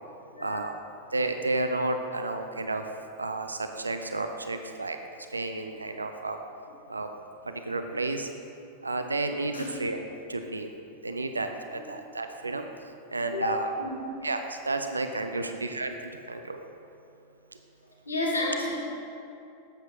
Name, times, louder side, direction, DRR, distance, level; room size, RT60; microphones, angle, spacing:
voice 1, 0.4-0.8 1.1-2.8 3.2-5.0 5.3-6.4 6.9-7.1 7.7-8.3 8.8-10.0 10.3-10.7 11.0-12.7 13.1-13.7 14.2-16.6, right 2 dB, 80° right, 7 dB, 0.4 m, -31 dB
voice 2, 13.2-13.5 13.8-14.1 18.1-18.8, left 1 dB, 80° left, -4 dB, 1.7 m, -31 dB
11.5 x 7.9 x 2.8 m, 2.7 s
figure-of-eight pair, 90°, 0 cm